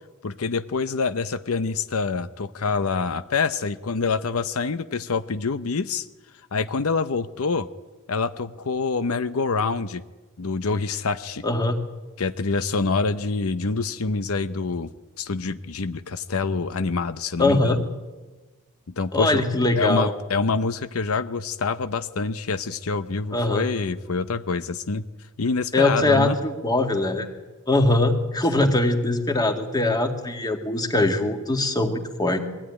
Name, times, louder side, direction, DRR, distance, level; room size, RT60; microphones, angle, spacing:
voice 1, 0.2-6.1 6.5-7.7 8.1-10.0 10.4-11.4 12.2-14.9 15.2-17.8 19.0-19.4 19.8-25.0 25.4-26.4 28.6-28.7, left 4 dB, 75° left, 12 dB, 0.7 m, -26 dB
voice 2, 11.4-11.8 17.4-17.8 19.1-20.1 23.3-23.6 25.7-27.3 27.7-32.4, left 2 dB, 20° left, 5 dB, 2.1 m, -22 dB
21.5 x 16.0 x 9.9 m, 1.2 s
head